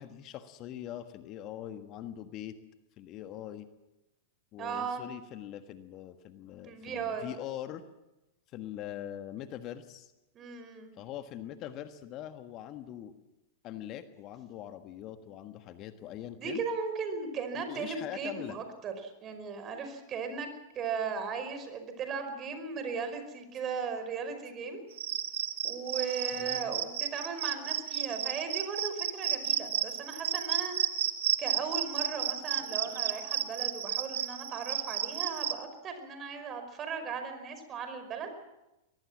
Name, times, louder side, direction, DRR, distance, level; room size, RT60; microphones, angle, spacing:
voice 1, 0.0-2.6 3.0-3.7 4.5-7.8 8.5-10.1 10.9-13.1 13.6-16.6 17.7-18.6 26.4-26.7, left 11 dB, 40° left, 9 dB, 1.5 m, -42 dB
voice 2, 4.6-5.0 6.6-7.3 10.3-10.9 16.4-20.5 20.8-24.8 25.6-30.8 31.4-38.4, right 5 dB, 30° right, 8 dB, 5.1 m, -37 dB
Cricket, 24.9-35.5, right 11 dB, 65° right, 1.8 m, -32 dB
23.5 x 19.0 x 7.5 m, 0.97 s
hypercardioid pair, 100°, 0 cm